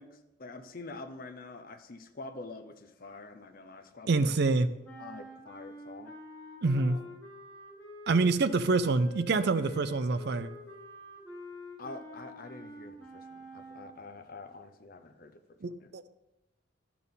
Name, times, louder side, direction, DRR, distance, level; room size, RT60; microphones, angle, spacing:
voice 1, 0.0-4.4 5.0-6.1 6.8-7.0 11.8-15.9, left 3 dB, 50° left, 6 dB, 0.7 m, -46 dB
voice 2, 4.1-4.7 6.6-7.0 8.1-10.5 15.6-16.1, right 3 dB, 60° right, 12 dB, 0.5 m, -26 dB
sound 1, 4.8-14.0, equal, 10° left, 2.2 m, -47 dB
12.0 x 6.0 x 3.7 m, 0.93 s
head